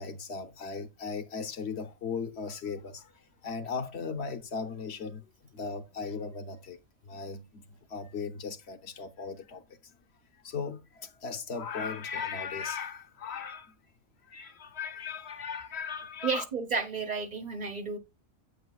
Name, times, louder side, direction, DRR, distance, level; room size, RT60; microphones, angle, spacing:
voice 1, 0.0-3.0 3.4-5.2 5.5-6.8 7.1-7.6 7.9-9.6 10.4-13.7 14.3-16.4, left 5 dB, 55° left, 1.1 m, -37 dB
voice 2, 16.2-18.0, right 4 dB, 35° right, 1.1 m, -32 dB
8.9 x 8.2 x 2.3 m
omnidirectional pair, 1.4 m